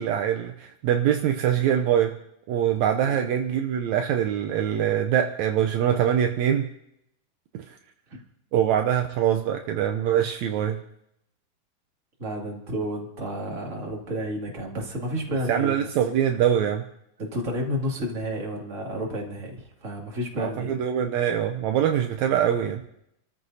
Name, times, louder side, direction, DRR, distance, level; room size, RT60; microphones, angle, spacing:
voice 1, 0.0-2.2 2.5-6.7 7.5-7.6 8.5-10.8 15.5-16.8 20.4-22.8, right 9 dB, 80° right, 5 dB, 1.6 m, -23 dB
voice 2, 12.2-15.9 17.2-20.7, equal, 25° right, -1 dB, 2.2 m, -31 dB
29.0 x 14.0 x 2.7 m, 0.78 s
omnidirectional pair, 4.0 m